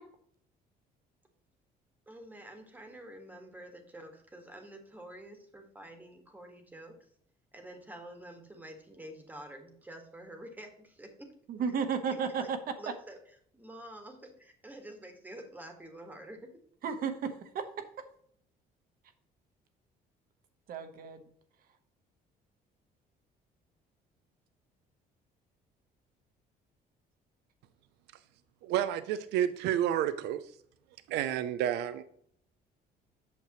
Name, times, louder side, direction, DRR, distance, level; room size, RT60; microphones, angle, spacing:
voice 1, 2.1-7.0 7.5-11.3 12.1-12.5 12.8-13.2 13.5-16.6, right 1 dB, 10° right, 4 dB, 1.6 m, -48 dB
voice 2, 11.5-12.6 16.8-18.1 20.7-21.3, right 6 dB, 60° right, 7 dB, 1.1 m, -33 dB
voice 3, 28.6-30.4 31.1-32.0, right 11 dB, 85° right, 13 dB, 0.5 m, -30 dB
8.3 x 6.6 x 3.0 m, 0.65 s
cardioid pair, 110°, 17 cm